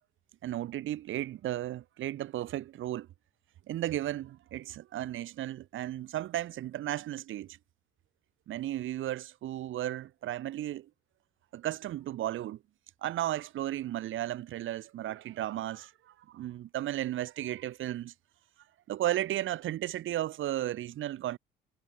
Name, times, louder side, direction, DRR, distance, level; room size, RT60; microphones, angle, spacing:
voice 1, 0.4-3.1 3.7-7.6 8.5-10.9 11.5-12.6 13.0-18.1 18.9-21.4, right 13 dB, 80° right, 6.7 m, -34 dB
cardioid pair, 90°, 20 cm